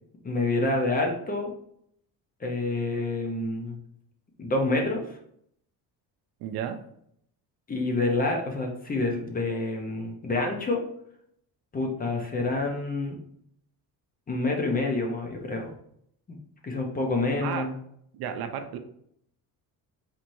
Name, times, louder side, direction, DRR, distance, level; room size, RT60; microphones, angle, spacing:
voice 1, 0.2-1.5 2.4-3.7 4.4-5.2 7.7-10.8 11.7-13.2 14.3-15.7 16.3-16.4 16.6-17.7, left 2 dB, 25° left, 1 dB, 0.6 m, -27 dB
voice 2, 6.4-6.8 17.4-17.7 18.1-18.8, right 8 dB, 70° right, 8 dB, 0.6 m, -32 dB
4.3 x 3.1 x 2.6 m, 0.70 s
cardioid pair, 150°, 39 cm